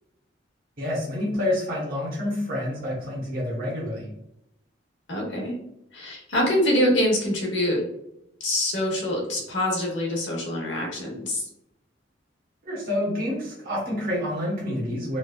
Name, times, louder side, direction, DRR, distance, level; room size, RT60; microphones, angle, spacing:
voice 1, 0.8-4.1 12.7-15.2, left 1 dB, 50° right, -6 dB, 0.9 m, -28 dB
voice 2, 5.1-5.5 5.9-7.8 8.4-11.5, left 1 dB, 75° left, -1 dB, 0.9 m, -25 dB
3.2 x 2.2 x 2.2 m, 0.80 s
head